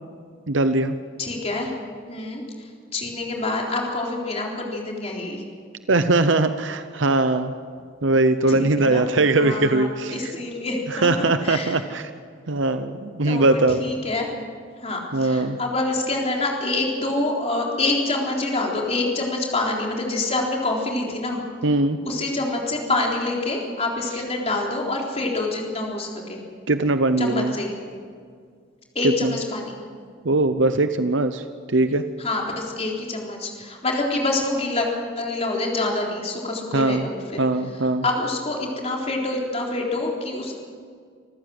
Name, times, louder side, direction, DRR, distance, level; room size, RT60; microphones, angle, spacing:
voice 1, 0.5-1.0 5.9-7.5 8.0-10.3 10.9-12.1 12.5-13.9 15.1-15.6 21.6-22.0 26.7-27.5 29.0-29.3 30.2-32.0 36.7-37.1 37.4-38.0, right 2 dB, 70° right, 10 dB, 0.8 m, -21 dB
voice 2, 1.2-1.7 2.1-2.7 2.9-5.4 8.5-9.0 9.4-11.8 13.2-14.3 14.8-21.4 22.0-26.4 27.2-27.7 28.9-29.8 32.2-34.9 35.2-37.4 38.0-40.6, left 2 dB, 35° left, -1 dB, 3.9 m, -26 dB
27.0 x 14.5 x 7.8 m, 2.1 s
head